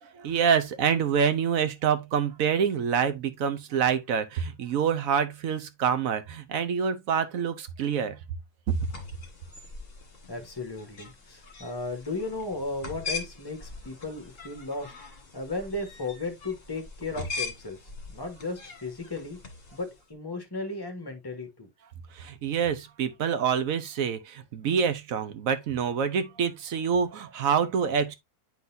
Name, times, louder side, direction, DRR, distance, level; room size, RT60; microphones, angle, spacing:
voice 1, 0.0-8.2 8.7-8.8 22.1-28.1, right 7 dB, 65° right, 1.2 m, -26 dB
sound 1, 8.7-20.0, left 4 dB, 40° left, 1.7 m, -41 dB
voice 2, 10.3-14.9 15.3-17.8 18.1-19.4 19.7-21.7, left 2 dB, 15° left, 1.2 m, -35 dB
9.4 x 4.0 x 2.6 m
omnidirectional pair, 1.6 m